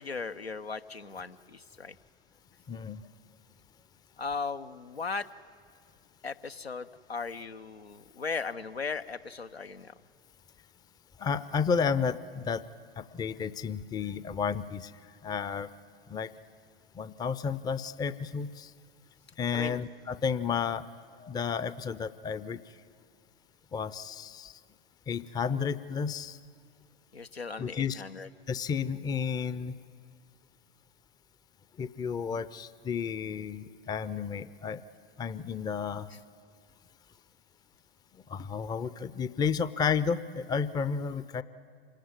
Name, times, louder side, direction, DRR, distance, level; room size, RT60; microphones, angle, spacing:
voice 1, 0.0-2.0 4.2-5.3 6.2-9.9 19.5-19.8 27.1-28.3 32.2-32.4 36.1-36.2, left 4 dB, 85° left, 9 dB, 0.9 m, -37 dB
voice 2, 2.7-3.0 11.2-12.6 13.0-14.9 15.2-15.7 16.1-16.3 16.9-18.7 19.4-20.8 21.2-22.6 23.7-24.6 25.1-26.4 27.6-28.0 28.5-29.7 31.8-34.8 35.2-36.1 38.3-41.4, left 6 dB, 15° left, 15 dB, 0.6 m, -32 dB
26.5 x 18.0 x 9.7 m, 2.2 s
figure-of-eight pair, 90°, 30 cm